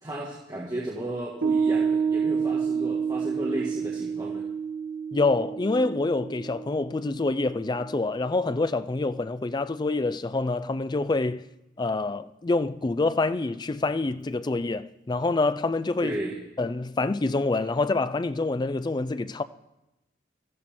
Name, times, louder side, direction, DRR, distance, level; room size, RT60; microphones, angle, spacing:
voice 1, 0.0-4.4 16.0-16.4, right 1 dB, 20° right, 1.7 m, -34 dB
Piano, 1.4-8.2, right 6 dB, 85° right, 1.3 m, -29 dB
voice 2, 5.1-11.4 11.8-16.2 16.6-19.4, left 3 dB, 25° left, 0.4 m, -26 dB
16.5 x 13.5 x 4.3 m
head